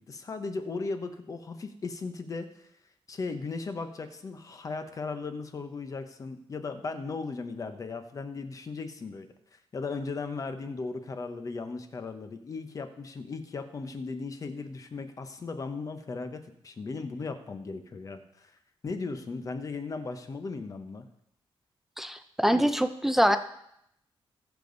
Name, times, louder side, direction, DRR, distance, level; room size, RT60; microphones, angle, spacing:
voice 1, 0.0-2.5 3.1-18.5 18.8-21.1, left 4 dB, 35° left, 8 dB, 1.0 m, -37 dB
voice 2, 22.0-23.4, equal, 5° right, 9 dB, 0.5 m, -24 dB
20.0 x 7.0 x 4.0 m, 0.76 s
wide cardioid pair, 170°, 10 cm